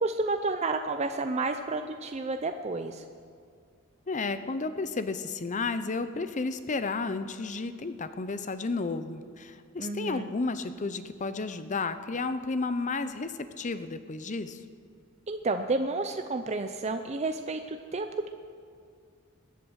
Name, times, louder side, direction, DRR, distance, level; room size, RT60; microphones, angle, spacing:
voice 1, 0.0-3.0 9.8-10.2 15.3-18.3, right 3 dB, 30° right, 7 dB, 0.5 m, -31 dB
voice 2, 4.1-14.6, left 3 dB, 35° left, 11 dB, 0.7 m, -32 dB
22.5 x 8.3 x 6.4 m, 2.2 s
head